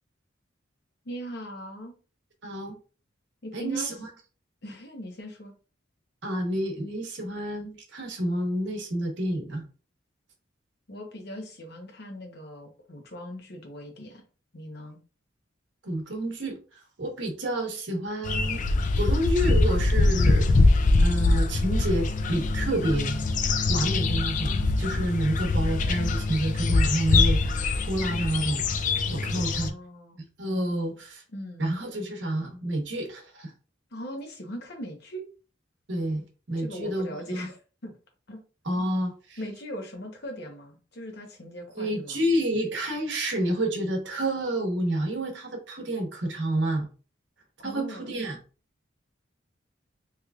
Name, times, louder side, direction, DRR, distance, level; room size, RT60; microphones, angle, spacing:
voice 1, 1.0-1.9 3.4-4.0 4.6-5.5 10.9-14.2 14.5-15.0 29.3-30.2 31.3-31.7 33.9-35.3 36.6-37.9 38.3-38.4 39.4-42.2 47.6-48.1, equal, 55° left, 3 dB, 0.9 m, -40 dB
voice 2, 2.4-2.8 3.5-4.1 6.2-9.6 15.8-18.6 19.0-20.5 21.0-23.2 23.7-28.6 29.1-29.7 30.4-31.2 31.6-33.5 35.9-37.5 38.6-39.4 41.8-46.9 47.6-48.4, right 1 dB, 65° right, 2 dB, 1.0 m, -29 dB
sound 1, 18.2-29.7, left 3 dB, 40° left, 0.3 m, -23 dB
3.3 x 3.1 x 2.3 m, 0.36 s
head